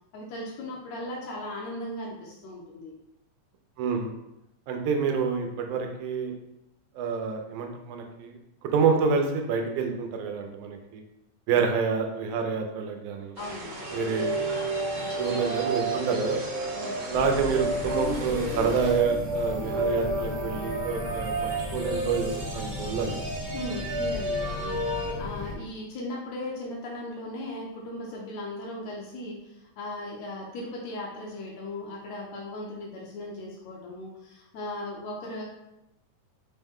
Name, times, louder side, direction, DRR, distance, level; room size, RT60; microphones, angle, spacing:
voice 1, 0.1-2.9 11.5-11.6 13.4-13.8 15.0-15.2 16.8-17.0 23.5-35.4, left 1 dB, 75° left, -2 dB, 1.8 m, -37 dB
voice 2, 3.8-4.1 4.7-6.3 7.0-8.4 8.7-11.0 11.5-13.3 13.9-14.4 15.2-16.4 17.1-23.2, right 5 dB, 85° right, 3 dB, 2.0 m, -28 dB
sound 1, 13.3-19.0, right 1 dB, 70° right, 1.3 m, -39 dB
sound 2, 13.8-25.1, right 2 dB, 45° right, 1.1 m, -31 dB
sound 3, 17.1-25.5, left 2 dB, 40° left, 0.9 m, -37 dB
5.3 x 2.2 x 3.5 m, 0.87 s
omnidirectional pair, 3.4 m